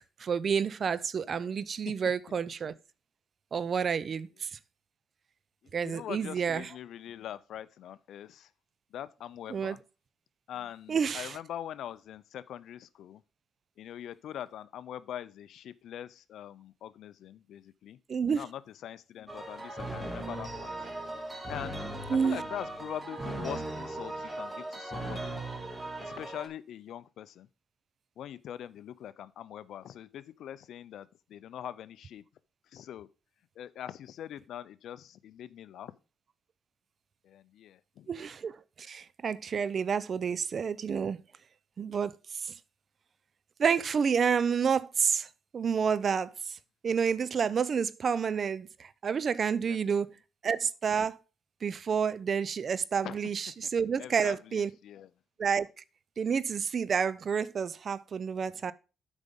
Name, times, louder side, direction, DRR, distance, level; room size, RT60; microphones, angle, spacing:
voice 1, 0.0-2.7 3.5-4.6 5.7-6.7 9.5-9.8 10.9-11.4 18.1-18.4 22.1-22.4 38.1-41.2 41.8-42.5 43.6-46.6 46.8-50.1 50.4-51.2 51.6-54.7 55.4-55.8 56.2-58.7, right 6 dB, 50° right, 0.5 m, -29 dB
voice 2, 5.6-8.5 8.9-9.8 10.5-13.2 13.8-18.0 18.3-20.7 21.5-21.8 22.2-25.4 26.0-27.5 28.2-32.2 32.7-33.1 33.6-35.9 37.2-38.1 49.7-50.0 53.0-53.2 54.0-55.1, left 10 dB, 75° left, 0.5 m, -43 dB
sound 1, 19.3-26.5, right 1 dB, 15° right, 1.9 m, -38 dB
8.3 x 5.2 x 5.2 m
cardioid pair, 90°, 0 cm